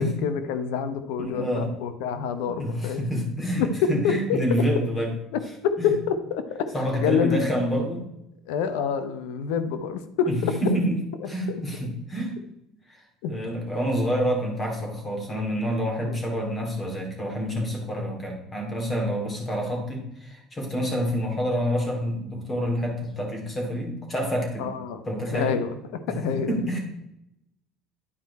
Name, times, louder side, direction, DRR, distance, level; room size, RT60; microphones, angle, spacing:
voice 1, 0.0-3.0 3.6-4.8 5.3-6.7 7.0-7.5 8.5-10.7 11.2-11.3 13.2-13.3 16.0-16.2 24.6-25.0 25.3-26.5, left 7 dB, 85° left, 11 dB, 0.8 m, -27 dB
voice 2, 1.2-1.8 2.5-5.1 5.8-5.9 6.7-8.0 10.3-12.4 12.9-13.0 13.3-24.7 25.0-25.6 26.1-26.8, equal, 25° left, 1 dB, 2.6 m, -27 dB
10.0 x 4.6 x 4.1 m, 0.84 s
cardioid pair, 115°, 0 cm